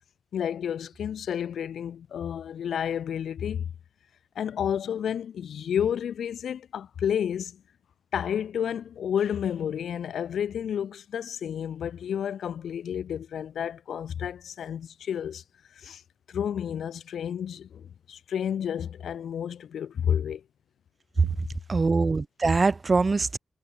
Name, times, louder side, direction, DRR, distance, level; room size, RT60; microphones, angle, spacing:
voice 1, 0.3-3.7 4.4-7.6 8.1-15.4 15.7-16.0 16.3-20.4 21.2-21.3, left 9 dB, 85° left, 0.4 m, -31 dB
voice 2, 21.7-23.4, right 3 dB, 30° right, 0.8 m, -23 dB
wide cardioid pair, 130°, 0 cm